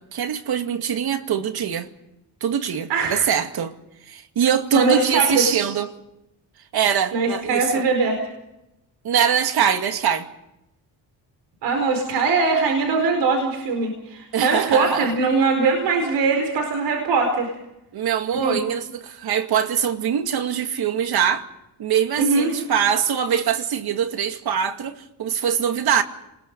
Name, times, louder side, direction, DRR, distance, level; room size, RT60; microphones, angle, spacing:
voice 1, 0.0-1.9 2.4-3.8 4.1-5.9 6.7-7.8 9.0-10.3 14.3-15.1 17.9-21.4 21.8-26.0, right 8 dB, 65° right, 2.3 m, -23 dB
voice 2, 2.9-3.2 4.7-5.6 7.1-8.1 11.6-17.5 18.4-18.6 22.2-22.5, right 4 dB, 90° right, 4.7 m, -21 dB
30.0 x 21.5 x 5.4 m
cardioid pair, 95°, 40 cm